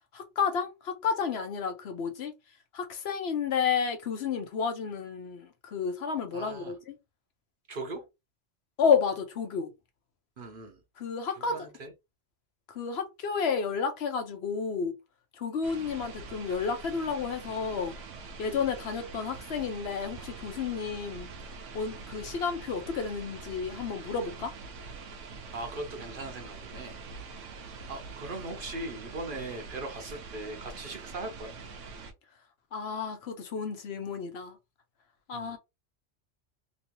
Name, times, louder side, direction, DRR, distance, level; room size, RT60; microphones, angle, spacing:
voice 1, 0.1-2.3 2.7-6.9 8.8-9.7 11.0-11.7 12.7-15.0 15.4-18.0 18.4-21.3 21.7-24.5 32.7-34.6 35.3-35.6, left 6 dB, 65° left, 0.9 m, -31 dB
voice 2, 6.3-6.7 7.7-8.1 10.4-10.8 11.4-11.9 25.5-27.0 27.9-31.5 35.3-35.6, right 2 dB, 50° right, 0.8 m, -39 dB
sound 1, 15.6-32.1, right 4 dB, 90° right, 1.0 m, -44 dB
3.1 x 2.7 x 2.8 m
omnidirectional pair, 1.2 m